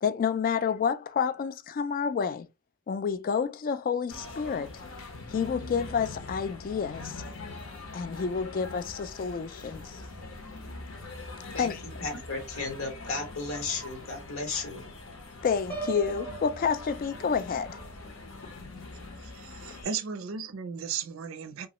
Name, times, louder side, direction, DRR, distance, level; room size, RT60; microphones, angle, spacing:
voice 1, 0.0-2.5 2.9-4.7 5.3-7.2 7.9-10.0 11.6-11.8 15.4-17.8 19.7-19.9, left 6 dB, 45° left, 0.3 m, -29 dB
sound 1, 4.1-19.8, left 2 dB, 70° left, 0.9 m, -43 dB
voice 2, 12.0-14.9, left 3 dB, 90° left, 1.2 m, -34 dB
Piano, 15.7-17.6, right 4 dB, 10° left, 0.7 m, -38 dB
voice 3, 19.2-21.7, right 6 dB, 75° right, 0.4 m, -35 dB
2.9 x 2.3 x 2.9 m
head